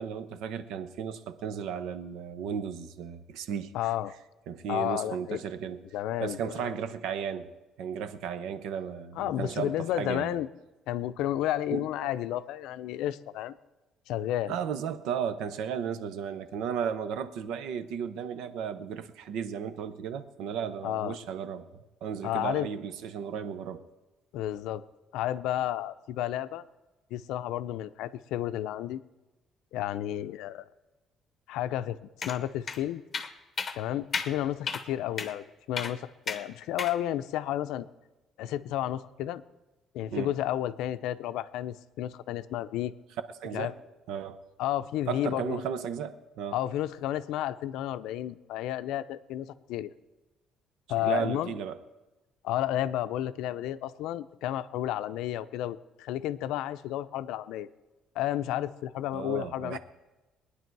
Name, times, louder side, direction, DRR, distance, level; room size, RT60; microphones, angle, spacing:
voice 1, 0.0-3.7 4.5-5.8 6.2-7.5 7.8-10.3 11.7-12.1 14.5-21.7 22.0-23.8 40.1-40.3 43.4-43.8 44.1-44.4 45.1-46.6 51.0-51.8 59.1-59.8, right 7 dB, 75° right, 12 dB, 0.9 m, -34 dB
voice 2, 3.7-4.1 4.7-5.4 5.9-6.7 9.2-10.5 10.9-13.6 14.1-14.6 20.8-21.2 22.2-22.7 24.3-24.8 25.1-26.6 27.1-29.0 29.7-30.6 31.5-32.0 32.3-33.0 33.8-37.9 38.4-39.4 39.9-42.9 43.5-43.7 44.6-45.6 46.5-49.9 50.9-51.5 52.4-57.7 58.2-59.8, left 12 dB, 85° left, 13 dB, 0.5 m, -32 dB
sound 1, 32.2-32.4 32.7-32.8 33.1-33.3 33.6-33.8 34.1-34.3 34.7-34.8 35.2-35.3 35.8-35.9 36.3-36.4 36.8-37.0, left 5 dB, 25° left, 0.8 m, -32 dB
21.0 x 9.9 x 4.7 m, 1.1 s
cardioid pair, 180°, 0 cm